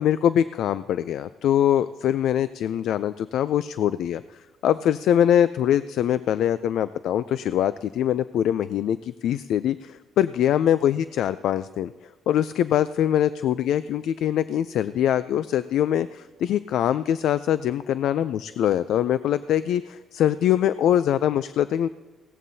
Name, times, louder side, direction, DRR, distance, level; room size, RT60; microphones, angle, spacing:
voice 1, 0.0-4.2 4.6-11.9 12.3-21.9, left 10 dB, 80° left, 14 dB, 0.3 m, -23 dB
17.5 x 14.5 x 2.7 m, 1.3 s
cardioid pair, 90°, 0 cm